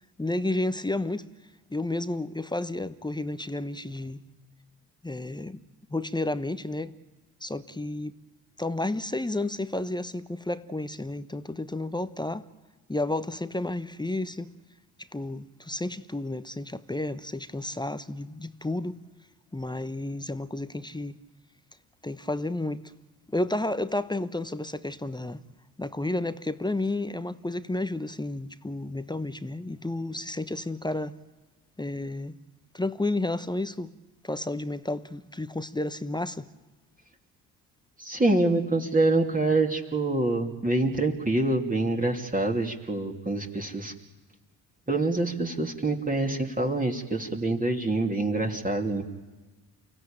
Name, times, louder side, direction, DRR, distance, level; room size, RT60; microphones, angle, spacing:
voice 1, 0.2-1.3 1.7-4.2 5.0-5.6 5.9-6.9 7.4-8.1 8.6-12.4 12.9-14.5 15.1-19.0 19.5-21.2 22.0-22.8 23.3-25.4 25.8-31.2 31.8-32.4 32.7-33.9 34.2-36.5, left 2 dB, 10° left, 1.1 m, -31 dB
voice 2, 38.0-43.9 44.9-49.0, right 2 dB, 15° right, 2.9 m, -26 dB
30.0 x 16.5 x 9.0 m
figure-of-eight pair, 40°, 50 cm